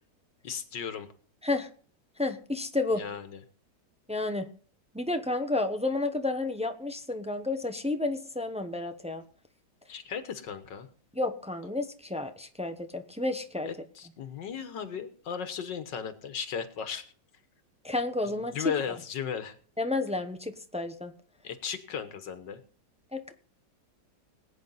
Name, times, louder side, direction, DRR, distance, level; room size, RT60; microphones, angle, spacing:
voice 1, 0.4-1.1 3.0-3.4 9.9-10.9 13.6-17.1 18.2-19.6 21.4-22.6, left 7 dB, 85° left, 9 dB, 1.9 m, -36 dB
voice 2, 2.2-3.0 4.1-4.5 4.9-9.2 11.1-13.7 17.8-18.6 19.8-21.1 23.1-23.3, left 2 dB, 5° right, 7 dB, 0.6 m, -31 dB
20.0 x 9.3 x 4.0 m, 0.43 s
omnidirectional pair, 1.9 m